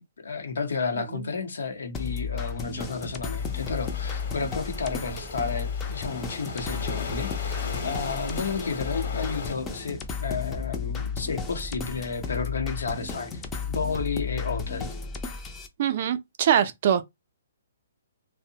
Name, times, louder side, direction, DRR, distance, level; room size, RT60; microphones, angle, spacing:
voice 1, 0.0-7.6 7.8-13.3 13.7-14.9, left 4 dB, 80° left, 0.7 m, -32 dB
sound 1, 1.9-15.7, left 5 dB, 15° left, 0.4 m, -33 dB
sound 2, 3.4-9.5, left 4 dB, 55° left, 0.9 m, -38 dB
voice 2, 15.8-17.0, right 9 dB, 50° right, 0.4 m, -23 dB
2.6 x 2.0 x 2.7 m
hypercardioid pair, 150°, 0 cm